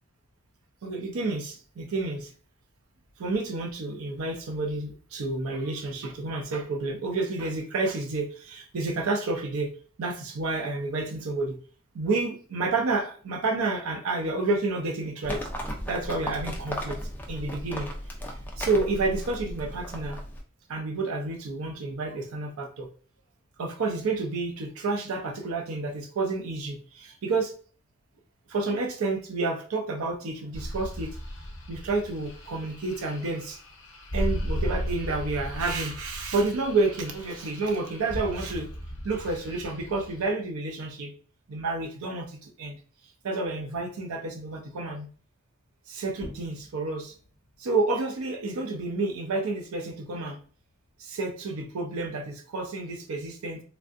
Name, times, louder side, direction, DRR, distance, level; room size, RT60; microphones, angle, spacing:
voice 1, 0.8-2.3 3.2-9.7 10.0-11.6 11.9-15.5 15.9-17.0 17.3-17.9 18.3-20.2 20.7-22.9 23.6-27.5 28.5-31.2 31.7-33.6 34.1-38.7 39.0-41.1 41.5-42.8 43.2-45.1 45.9-47.1 47.6-50.4 51.0-53.6, right 3 dB, 75° right, 3 dB, 0.5 m, -30 dB
Livestock farm animals working animals, 15.2-20.4, equal, 10° left, 0.4 m, -35 dB
sound 1, 30.5-40.3, equal, 50° left, 0.9 m, -36 dB
sound 2, 46.0-51.2, left 2 dB, 80° left, 0.5 m, -51 dB
3.3 x 2.5 x 2.4 m, 0.42 s
head